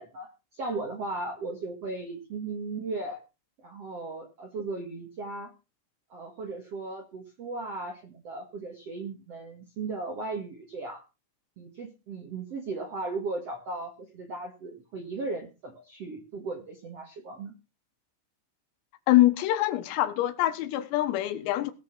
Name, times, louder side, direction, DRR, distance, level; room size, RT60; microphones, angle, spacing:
voice 1, 0.0-3.2 3.6-5.5 6.1-11.0 11.6-17.5, right 3 dB, 75° right, 1.4 m, -36 dB
voice 2, 19.1-21.7, left 15 dB, 90° left, 4.0 m, -24 dB
18.0 x 6.5 x 6.1 m
omnidirectional pair, 5.9 m